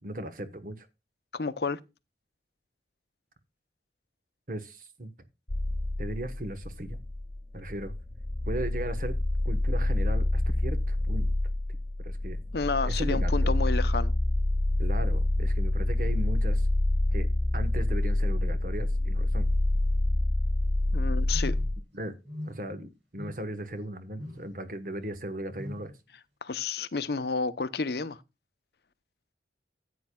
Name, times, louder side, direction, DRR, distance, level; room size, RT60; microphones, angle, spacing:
voice 1, 0.0-0.9 4.5-5.1 6.0-7.0 7.5-7.9 8.5-9.1 9.4-11.3 12.0-12.4 12.8-13.5 14.8-16.7 17.1-17.3 17.5-19.5 21.9-22.1 22.5-25.9, right 1 dB, 45° right, 1.1 m, -37 dB
voice 2, 1.3-1.8 12.5-14.1 20.9-21.5 26.4-28.2, left 4 dB, 60° left, 0.7 m, -30 dB
sound 1, 5.5-21.8, left 1 dB, 15° left, 0.4 m, -27 dB
sound 2, 21.3-21.8 22.2-22.7 23.1-23.6 24.2-24.5 25.5-25.9, left 1 dB, 80° right, 5.5 m, -41 dB
14.5 x 8.5 x 2.3 m
head